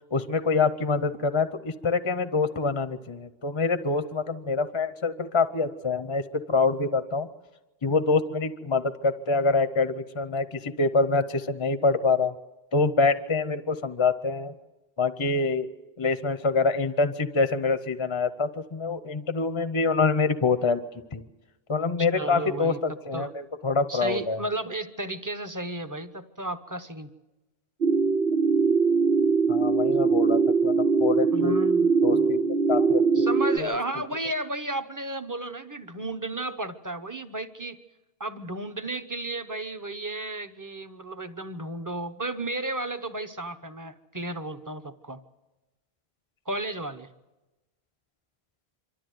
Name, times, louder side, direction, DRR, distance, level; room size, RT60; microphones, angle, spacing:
voice 1, 0.1-7.3 7.8-12.3 12.7-14.5 15.0-15.7 16.0-20.8 21.1-21.2 21.7-24.4 29.5-31.6 32.0-33.3 33.6-33.8, left 4 dB, 30° left, 12 dB, 0.7 m, -26 dB
voice 2, 22.0-22.8 23.1-23.3 23.9-27.1 31.3-32.5 33.1-37.8 38.2-45.2 46.5-47.1, right 2 dB, 20° right, 9 dB, 0.9 m, -33 dB
sound 1, 27.8-33.6, right 4 dB, 70° right, 1.2 m, -22 dB
26.0 x 13.0 x 9.3 m, 1.1 s
omnidirectional pair, 1.1 m